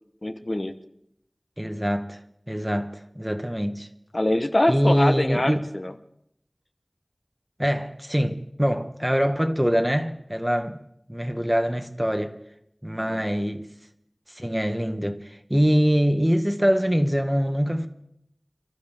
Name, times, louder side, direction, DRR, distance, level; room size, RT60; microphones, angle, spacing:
voice 1, 0.2-0.7 4.1-5.9 13.0-13.2, left 1 dB, 50° left, 1.1 m, -24 dB
voice 2, 1.6-2.2 2.5-3.9 4.7-5.7 7.6-10.8 11.1-12.4 12.8-13.7 14.3-17.9, equal, 10° right, 1.5 m, -24 dB
28.5 x 13.0 x 3.6 m
wide cardioid pair, 40°, 0 cm